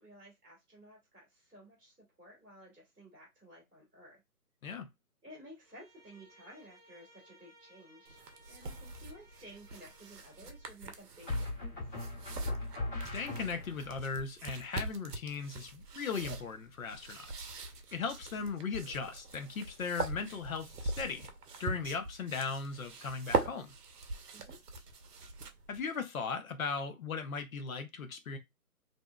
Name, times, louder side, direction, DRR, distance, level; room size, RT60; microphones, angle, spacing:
voice 1, 0.0-4.2 5.2-8.2 8.5-12.0 24.3-24.6, equal, ahead, 0.8 m, -55 dB
Bowed string instrument, 5.6-10.8, right 1 dB, 35° right, 0.8 m, -62 dB
sound 1, 8.1-25.8, right 4 dB, 80° right, 0.7 m, -42 dB
sound 2, 8.6-9.1 11.3-13.9, left 2 dB, 35° left, 1.2 m, -39 dB
voice 2, 13.1-17.5 17.9-21.3 21.6-23.7 25.7-28.4, left 5 dB, 65° left, 0.6 m, -38 dB
2.6 x 2.1 x 2.2 m
figure-of-eight pair, 160°, 46 cm